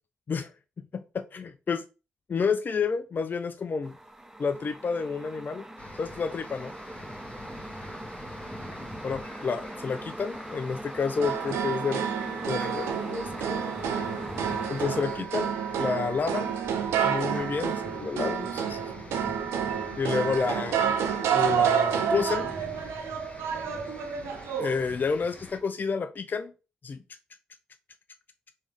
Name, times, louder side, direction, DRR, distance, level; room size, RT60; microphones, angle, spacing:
voice 1, 0.9-1.8 2.3-4.0 4.4-5.7 6.0-6.7 9.0-12.1 12.5-13.7 14.7-15.5 15.8-16.5 17.0-18.8 20.0-20.9 21.3-22.6 24.6-26.5 26.8-27.0, left 5 dB, 45° left, 0.4 m, -30 dB
sound 1, 3.8-15.0, right 1 dB, 10° right, 0.7 m, -41 dB
sound 2, 5.8-25.6, left 2 dB, 30° left, 1.3 m, -46 dB
sound 3, 11.2-24.8, right 8 dB, 80° right, 0.6 m, -29 dB
3.5 x 3.2 x 3.4 m
hypercardioid pair, 40°, 4 cm